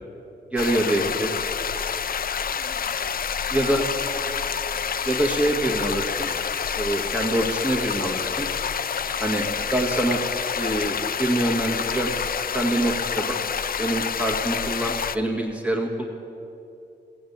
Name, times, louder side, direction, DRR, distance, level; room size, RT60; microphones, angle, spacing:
voice 1, 0.5-1.3 3.5-3.8 5.1-6.3 6.8-8.5 9.2-9.5 9.7-10.2 10.6-12.1 12.5-13.4 13.8-16.0, right 1 dB, 5° right, 0 dB, 1.7 m, -25 dB
sound 1, 0.6-15.2, left 7 dB, 50° left, 0.5 m, -28 dB
voice 2, 2.5-3.1 3.5-3.8 4.1-4.9 9.6-9.8 13.1-13.7, right 2 dB, 70° right, -1 dB, 3.9 m, -45 dB
16.0 x 8.1 x 8.7 m, 2.7 s
cardioid pair, 80°, 19 cm